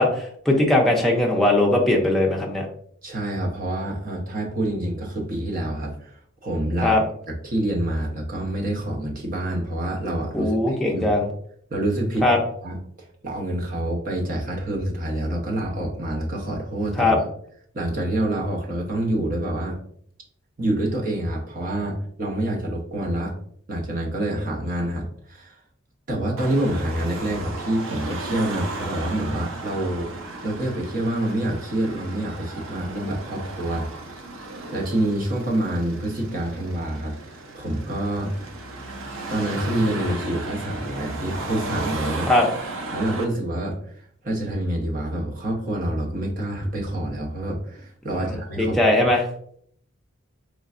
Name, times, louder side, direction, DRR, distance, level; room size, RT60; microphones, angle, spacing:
voice 1, 0.0-2.7 6.8-7.0 10.3-11.3 12.2-12.4 17.0-17.2 42.3-42.5 48.2-49.2, left 1 dB, ahead, -2 dB, 0.5 m, -20 dB
voice 2, 3.0-7.0 7.4-11.2 11.7-12.3 12.6-12.8 13.2-17.2 17.7-19.8 20.6-23.3 23.7-25.6 26.1-30.1 30.4-33.9 34.7-38.3 39.3-42.3 42.9-48.8, right 1 dB, 40° right, -1 dB, 0.8 m, -27 dB
Car passing by / Traffic noise roadway noise / Engine, 26.4-43.2, right 2 dB, 80° right, 0.6 m, -35 dB
3.8 x 3.2 x 2.5 m, 0.64 s
head